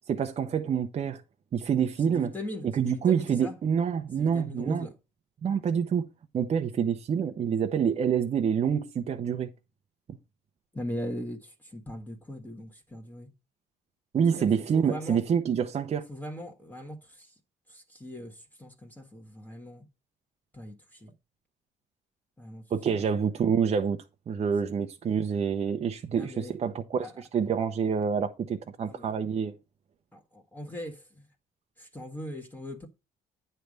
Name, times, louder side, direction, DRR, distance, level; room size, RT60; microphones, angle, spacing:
voice 1, 0.1-1.2 1.5-2.3 2.7-4.9 5.4-6.1 6.3-9.5 14.1-16.1 22.7-29.5, right 7 dB, 40° right, 0.8 m, -27 dB
voice 2, 2.0-3.6 4.2-4.9 10.7-13.3 14.3-15.2 16.1-17.3 17.7-19.8 20.5-21.1 22.4-22.6 22.9-23.1 26.1-26.5 27.0-27.1 28.8-29.1 30.1-31.3 31.8-32.9, left 1 dB, 10° left, 1.3 m, -40 dB
9.3 x 3.4 x 6.3 m
cardioid pair, 110°, 17 cm